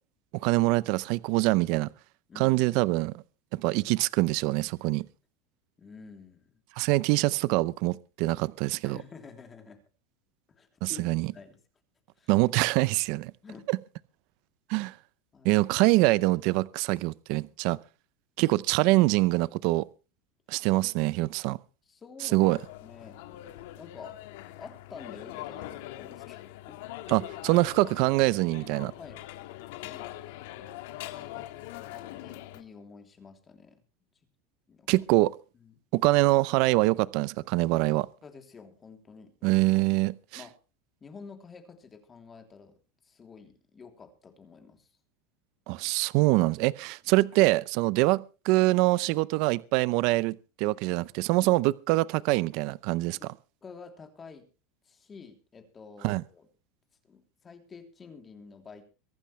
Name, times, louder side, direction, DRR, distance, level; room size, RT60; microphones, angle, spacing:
voice 1, 0.3-1.9 2.4-3.1 3.5-5.0 6.8-9.0 10.8-11.3 12.3-13.3 13.7-13.8 14.7-15.0 15.4-17.8 18.4-19.8 20.5-21.6 22.2-22.6 27.1-28.9 34.9-35.3 35.9-38.1 39.4-40.4 45.7-53.3 56.0-56.2, right 20 dB, 55° right, 0.6 m, -24 dB
voice 2, 2.3-2.8 5.8-6.5 8.8-9.8 10.5-11.6 12.2-12.3 13.1-13.7 15.3-15.5 21.9-22.5 22.8-24.2 24.6-26.4 26.7-27.1 27.4-27.6 29.0-29.3 29.8-30.1 31.1-33.8 34.7-34.9 35.5-35.7 37.7-39.9 40.4-40.6 41.0-42.7 43.0-44.9 47.0-47.1 53.2-53.3 53.6-54.5 54.8-56.5 57.0-58.8, left 5 dB, 20° left, 3.1 m, -49 dB
sound 1, 22.4-32.6, left 15 dB, 75° left, 1.8 m, -42 dB
23.5 x 12.0 x 3.3 m
supercardioid pair, 155°, 0 cm